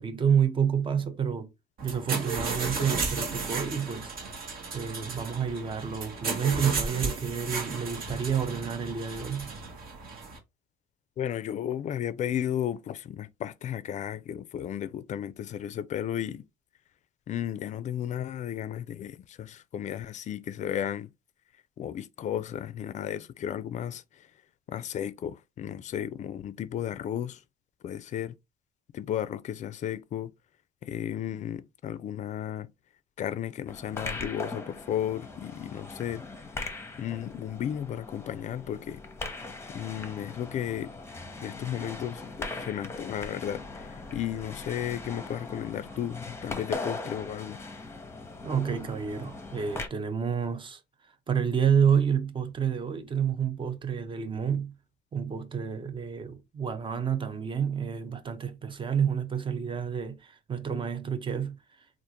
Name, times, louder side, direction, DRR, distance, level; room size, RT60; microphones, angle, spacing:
voice 1, 0.0-1.5 1.8-4.1 4.7-9.5 48.4-50.8 51.3-54.8 55.1-61.6, right 7 dB, 30° right, 0.6 m, -29 dB
sound 1, 1.8-10.4, right 4 dB, 60° right, 1.2 m, -34 dB
voice 2, 11.2-16.4 17.3-21.1 21.8-24.3 24.7-27.4 27.8-28.4 28.9-30.3 30.8-32.7 33.2-36.2 37.0-39.0 39.7-40.9 41.4-47.6, left 10 dB, 45° left, 0.4 m, -34 dB
sound 2, 33.7-49.9, left 3 dB, 15° left, 0.8 m, -40 dB
3.6 x 2.5 x 2.8 m
cardioid pair, 110°, 17 cm